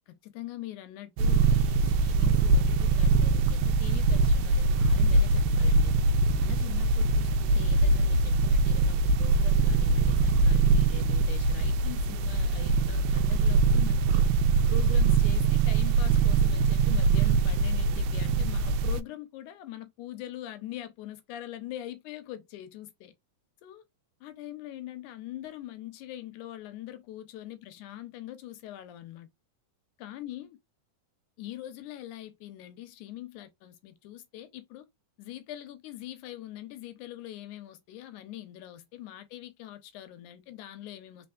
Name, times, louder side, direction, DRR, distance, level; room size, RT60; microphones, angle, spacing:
voice 1, 0.1-6.0 6.4-14.3 14.7-23.1 23.6-23.8 24.2-29.3 30.0-30.6 31.4-34.9 35.2-41.3, left 13 dB, 85° left, 2.2 m, -43 dB
sound 1, 1.2-19.0, right 3 dB, 80° right, 1.8 m, -23 dB
4.2 x 4.1 x 2.3 m
omnidirectional pair, 3.5 m